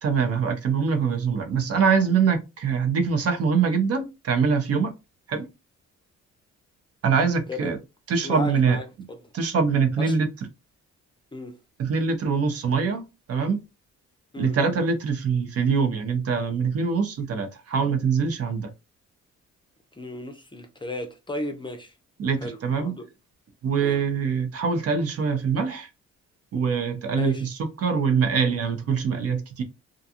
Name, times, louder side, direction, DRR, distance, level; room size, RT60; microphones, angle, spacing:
voice 1, 0.0-4.9 5.3-5.5 7.0-7.8 8.1-8.8 9.3-10.3 11.8-13.6 14.4-18.7 22.2-22.9 23.6-25.9 26.5-29.6, right 5 dB, 50° right, 0.6 m, -24 dB
voice 2, 8.2-9.3 10.0-10.2 11.3-11.6 14.3-14.6 19.9-21.9 22.3-23.1 23.8-24.0 27.1-27.5, left 1 dB, 15° left, 0.5 m, -35 dB
2.4 x 2.3 x 2.7 m
cardioid pair, 90°, 30 cm